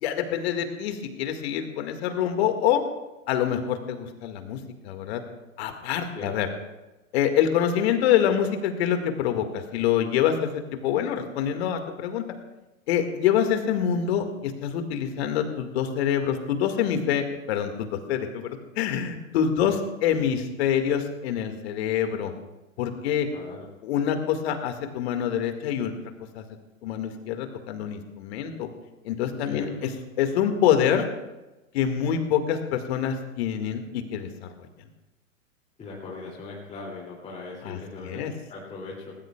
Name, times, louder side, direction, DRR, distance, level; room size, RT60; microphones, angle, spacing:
voice 1, 0.0-2.8 3.3-4.6 4.8-5.2 5.6-6.5 7.1-12.2 12.9-19.8 20.0-22.3 22.8-23.3 23.8-25.9 26.3-26.4 26.8-28.7 29.0-29.9 30.2-31.1 31.7-34.3 34.6-34.7 37.6-38.3, left 9 dB, 50° left, 6 dB, 2.1 m, -26 dB
voice 2, 23.3-23.6 29.5-29.7 35.8-38.2 38.5-39.1, left 3 dB, 15° left, -5 dB, 2.8 m, -39 dB
20.0 x 18.5 x 2.4 m, 1.1 s
hypercardioid pair, 115°, 41 cm